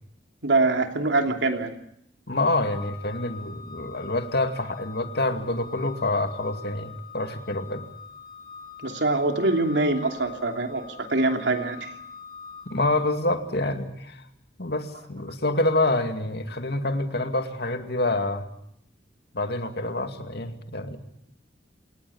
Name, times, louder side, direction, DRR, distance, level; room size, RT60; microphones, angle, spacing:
voice 1, 0.4-1.7 8.8-11.9, right 2 dB, 80° right, 4 dB, 3.1 m, -24 dB
voice 2, 2.3-7.8 12.7-14.2 14.6-18.4 19.3-21.0, left 2 dB, 60° left, 6 dB, 2.4 m, -27 dB
Organ, 2.7-13.4, left 6 dB, 25° left, 7.0 m, -44 dB
27.5 x 19.0 x 7.2 m, 0.74 s
head